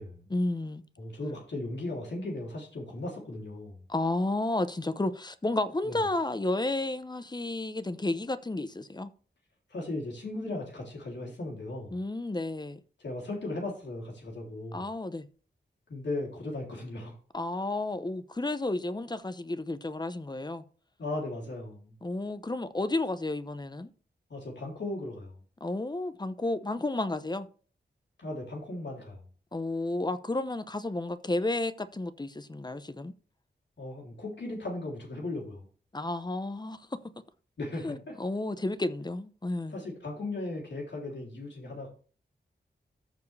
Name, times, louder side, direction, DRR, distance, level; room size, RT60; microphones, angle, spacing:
voice 1, 0.3-0.8 3.9-9.1 11.9-12.8 14.7-15.3 17.3-20.6 22.0-23.9 25.6-27.5 29.5-33.1 35.9-37.0 37.8-39.8, left 2 dB, 25° left, 0.8 m, -32 dB
voice 2, 1.0-3.8 5.8-6.0 9.7-12.0 13.0-14.8 15.9-17.1 21.0-21.9 24.3-25.4 28.2-29.2 33.8-35.7 37.6-38.2 39.7-41.9, left 2 dB, 80° left, 3.1 m, -37 dB
14.0 x 4.8 x 3.3 m
wide cardioid pair, 65°, 18 cm